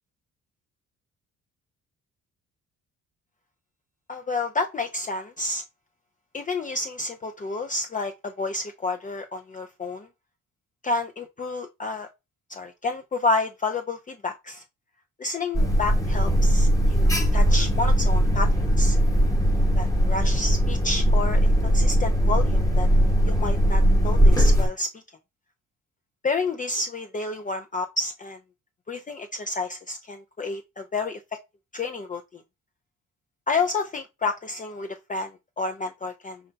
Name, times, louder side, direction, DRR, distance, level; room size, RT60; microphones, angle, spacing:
voice 1, 4.1-5.6 6.3-10.1 10.8-12.1 12.5-14.6 15.2-19.0 19.7-22.9 23.3-25.0 26.2-28.4 28.9-31.2 31.7-32.4 33.5-36.4, left 3 dB, 25° left, 0.5 m, -30 dB
Alarm, 15.5-24.7, equal, 10° left, 1.1 m, -20 dB
5.6 x 2.2 x 3.9 m
cardioid pair, 90°, 30 cm